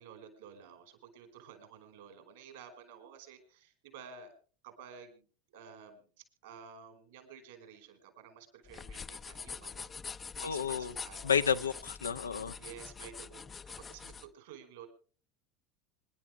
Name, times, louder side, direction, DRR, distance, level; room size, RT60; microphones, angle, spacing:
voice 1, 0.0-4.3 4.6-5.3 5.5-6.1 6.4-9.9 10.3-11.2 11.6-11.8 12.5-13.4 13.8-14.9, right 7 dB, 70° right, 4.9 m, -52 dB
sound 1, 8.7-14.3, left 5 dB, 25° left, 0.6 m, -45 dB
voice 2, 10.4-10.9 11.2-12.5, left 7 dB, 85° left, 0.7 m, -31 dB
26.0 x 11.0 x 3.4 m
figure-of-eight pair, 75°, 0 cm